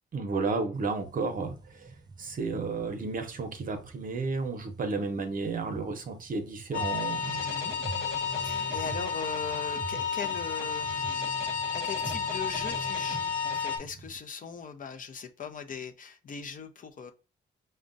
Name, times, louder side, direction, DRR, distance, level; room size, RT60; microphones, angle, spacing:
voice 1, 0.1-1.9 2.2-7.4, right 4 dB, 45° right, 6 dB, 0.7 m, -32 dB
sound 1, 0.7-14.2, right 3 dB, 20° right, 0.3 m, -47 dB
sound 2, 6.7-13.8, left 6 dB, 90° left, 1.0 m, -31 dB
voice 2, 7.4-7.8 8.4-11.3 11.7-17.1, left 5 dB, 45° left, 7 dB, 0.5 m, -40 dB
5.0 x 2.2 x 2.5 m, 0.32 s
cardioid pair, 100°, 20 cm